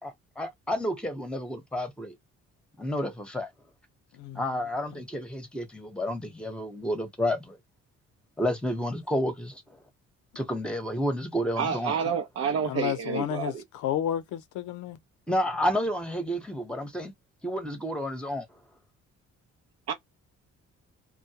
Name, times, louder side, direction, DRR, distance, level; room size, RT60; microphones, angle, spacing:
voice 1, 0.0-2.1 2.8-3.5 4.3-7.6 8.4-9.5 10.3-11.9 15.3-17.1 17.4-18.5, equal, 5° left, 0.9 m, -30 dB
voice 2, 11.6-13.6 19.9-20.0, right 7 dB, 55° right, 0.6 m, -29 dB
voice 3, 12.7-13.5 13.8-15.0, left 11 dB, 85° left, 0.6 m, -31 dB
2.2 x 2.1 x 2.8 m
cardioid pair, 90°, 30 cm